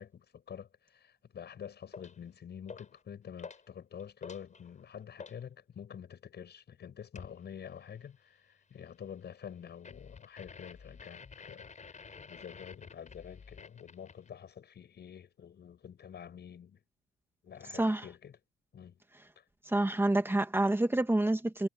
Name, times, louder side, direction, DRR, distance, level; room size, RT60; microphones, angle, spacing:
voice 1, 0.0-16.8 17.4-18.4 18.7-19.0 19.4-19.5, left 8 dB, 55° left, 7.8 m, -48 dB
sound 1, 1.9-2.2 2.7-3.0 3.4-3.7 4.0-5.4 7.2-7.4 9.8-14.3, left 5 dB, 35° left, 7.7 m, -49 dB
voice 2, 17.7-18.0 19.6-21.7, right 1 dB, 10° right, 2.1 m, -28 dB
cardioid pair, 90°, 20 cm